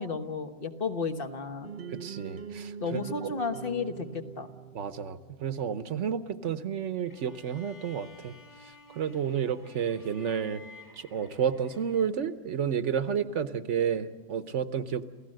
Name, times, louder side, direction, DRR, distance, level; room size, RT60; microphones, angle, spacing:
voice 1, 0.0-1.7 2.8-4.5, left 4 dB, 45° left, 6 dB, 1.4 m, -33 dB
sound 1, 1.6-5.6, right 6 dB, 50° right, 1.0 m, -43 dB
voice 2, 1.9-3.3 4.7-8.4 8.9-10.6 11.0-15.1, right 8 dB, 70° right, 12 dB, 1.2 m, -31 dB
sound 2, 7.1-12.4, left 2 dB, 15° left, 1.6 m, -53 dB
28.5 x 16.5 x 7.7 m, 1.4 s
omnidirectional pair, 1.3 m